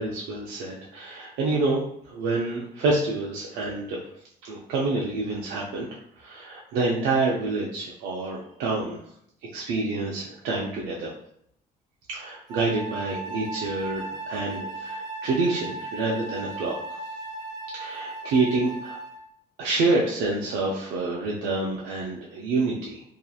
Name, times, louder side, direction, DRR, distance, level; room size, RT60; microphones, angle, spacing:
voice 1, 0.0-4.0 4.4-5.9 6.2-9.0 9.5-11.1 12.1-17.0 17.7-19.0 19.6-23.0, right 3 dB, 85° right, -4 dB, 0.5 m, -27 dB
Wind instrument woodwind instrument, 12.5-19.3, right 2 dB, 25° right, 0.6 m, -36 dB
2.8 x 2.4 x 2.3 m, 0.69 s
cardioid pair, 110°, 17 cm